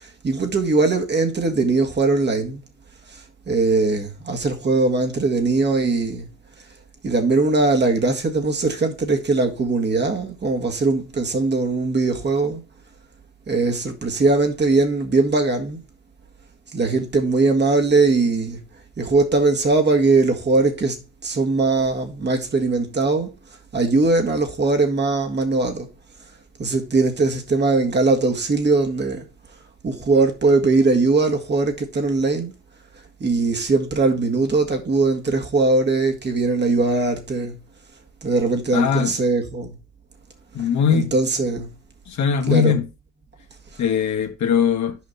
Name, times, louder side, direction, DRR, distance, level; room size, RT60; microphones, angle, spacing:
voice 1, 0.0-2.6 3.1-3.2 3.5-6.3 7.0-12.6 13.5-15.8 16.7-18.6 19.0-23.3 23.7-25.9 26.6-29.3 29.8-32.5 33.2-37.6 38.2-39.8 40.6-41.7 42.5-42.8, right 3 dB, 35° right, 1.7 m, -20 dB
voice 2, 38.7-39.1 40.5-41.1 42.1-42.9 43.8-45.0, left 8 dB, 70° left, 1.4 m, -20 dB
6.5 x 5.2 x 4.0 m
cardioid pair, 90°, 30 cm